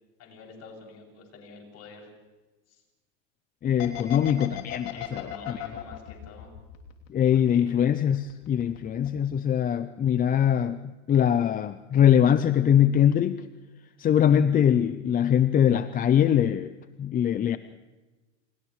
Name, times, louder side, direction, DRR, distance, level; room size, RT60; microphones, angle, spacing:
voice 1, 0.2-2.1 2.7-2.8 4.9-6.5 7.3-7.6, left 4 dB, 40° left, 0 dB, 7.3 m, -47 dB
voice 2, 3.6-5.6 7.1-13.5 14.0-16.7 17.0-17.6, left 9 dB, 20° left, 12 dB, 0.6 m, -22 dB
sound 1, 3.8-7.5 7.8-8.8 9.0-9.2, left 12 dB, 75° left, 3.3 m, -36 dB
29.0 x 28.0 x 3.2 m, 1.2 s
hypercardioid pair, 115°, 39 cm